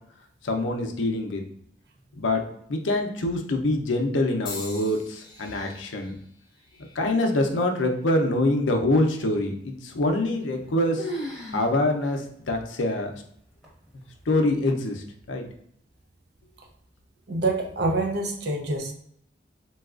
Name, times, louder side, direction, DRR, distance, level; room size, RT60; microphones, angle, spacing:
voice 1, 0.4-1.4 2.2-6.2 7.0-11.1 11.5-13.2 14.3-15.5, left 1 dB, 85° left, 4 dB, 0.5 m, -25 dB
sound 1, 4.5-8.6 9.3-9.7 10.7-10.9, left 4 dB, 25° left, 0.5 m, -44 dB
sound 2, 10.2-10.7 11.0-11.7 12.0-12.1 12.8-12.9 13.6-14.0, equal, ahead, 0.9 m, -35 dB
voice 2, 17.3-18.9, right 2 dB, 60° right, 3 dB, 0.5 m, -26 dB
4.1 x 2.3 x 2.4 m, 0.67 s
head